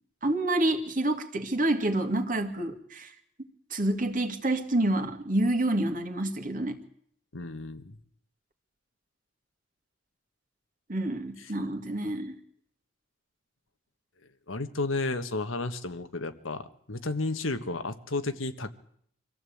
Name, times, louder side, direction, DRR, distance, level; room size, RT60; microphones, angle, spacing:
voice 1, 0.2-3.1 3.7-6.8 10.9-12.3, right 1 dB, 40° right, 6 dB, 2.2 m, -28 dB
voice 2, 7.3-8.0 11.4-11.5 12.0-12.1 14.5-18.7, left 2 dB, 85° left, 9 dB, 1.5 m, -32 dB
25.0 x 15.0 x 8.7 m, 0.67 s
head